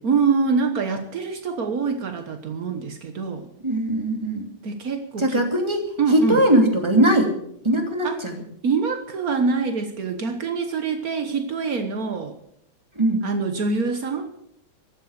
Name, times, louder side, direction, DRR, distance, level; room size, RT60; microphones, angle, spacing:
voice 1, 0.0-3.5 4.6-5.4 6.0-6.5 8.0-8.2 8.6-12.3 13.2-14.3, right 5 dB, 80° right, 7 dB, 0.8 m, -25 dB
voice 2, 3.6-4.5 5.2-7.3 7.6-8.4 12.9-13.3, right 1 dB, 10° right, 3 dB, 2.5 m, -20 dB
15.0 x 12.0 x 6.6 m, 0.73 s
omnidirectional pair, 3.3 m